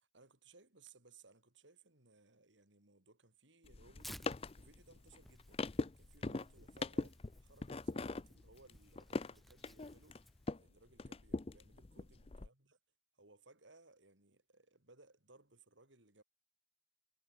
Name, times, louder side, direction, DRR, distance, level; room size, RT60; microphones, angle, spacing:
voice 1, 0.0-4.1 4.5-10.2 10.5-12.8 13.1-16.2, right 3 dB, 80° right, 3.9 m, -64 dB
sound 1, 3.6-10.7 11.0-12.5, left 3 dB, 30° left, 0.5 m, -42 dB
Tearing, 4.0-10.5, equal, ahead, 1.7 m, -59 dB
head